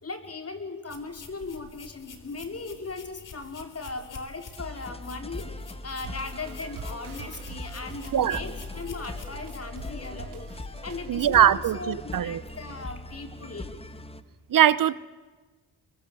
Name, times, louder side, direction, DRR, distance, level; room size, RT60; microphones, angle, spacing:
voice 1, 0.0-5.5 5.8-10.5 10.8-13.7, left 3 dB, 35° left, 5 dB, 4.5 m, -38 dB
sound 1, 0.9-9.9, left 5 dB, 55° left, 3.7 m, -48 dB
sound 2, 4.6-14.2, left 2 dB, 15° left, 1.9 m, -40 dB
sound 3, 6.0-11.5, right 9 dB, 85° right, 3.4 m, -46 dB
voice 2, 11.1-12.4 14.5-14.9, right 10 dB, 55° right, 18 dB, 0.9 m, -21 dB
25.5 x 22.0 x 8.0 m, 1.3 s
supercardioid pair, 55°, 39 cm